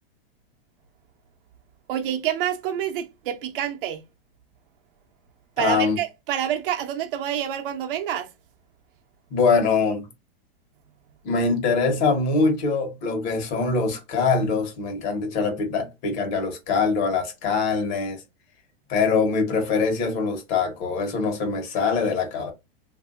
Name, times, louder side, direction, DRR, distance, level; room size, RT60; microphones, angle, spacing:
voice 1, 1.9-4.0 5.6-8.3, right 10 dB, 60° right, 0.7 m, -27 dB
voice 2, 5.6-6.0 9.3-10.1 11.2-18.2 18.9-22.5, left 4 dB, 50° left, 1.2 m, -23 dB
3.4 x 2.7 x 2.4 m
supercardioid pair, 150°, 31 cm